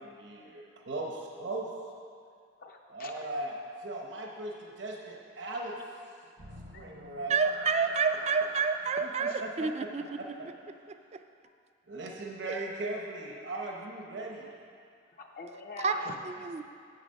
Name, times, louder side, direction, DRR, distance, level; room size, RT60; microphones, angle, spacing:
voice 1, 0.0-1.7 2.9-5.8 6.7-7.5 9.2-10.5 11.9-14.5, right 2 dB, 70° right, 0 dB, 0.9 m, -38 dB
voice 2, 2.6-3.2 6.7-6.8 9.0-9.4 15.1-16.6, left 3 dB, 50° left, 2 dB, 0.6 m, -45 dB
sound 1, 6.4-10.8, right 1 dB, 90° right, 2.7 m, -46 dB
voice 3, 7.3-9.3 9.6-10.0 10.9-11.2 15.8-16.1 16.5-16.6, right 5 dB, 35° right, 8 dB, 0.4 m, -28 dB
8.2 x 8.0 x 5.3 m, 2.3 s
head